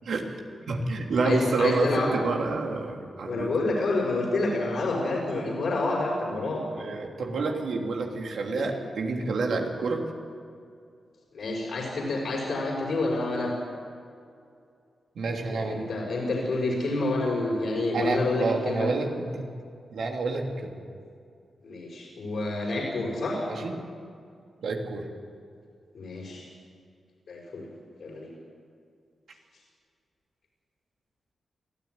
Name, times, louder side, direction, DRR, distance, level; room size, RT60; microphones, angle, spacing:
voice 1, 0.7-3.5 6.7-10.0 15.2-15.8 17.9-19.4 19.9-20.7 23.5-23.8 24.6-25.0, right 3 dB, 80° right, 1 dB, 3.2 m, -28 dB
voice 2, 1.2-2.1 3.3-6.6 8.5-8.7 11.3-13.5 15.5-18.9 21.6-23.4 25.9-26.4 27.3-27.6 28.0-28.3, left 2 dB, 75° left, -4 dB, 5.6 m, -28 dB
22.5 x 14.0 x 9.6 m, 2.4 s
cardioid pair, 70°, 0 cm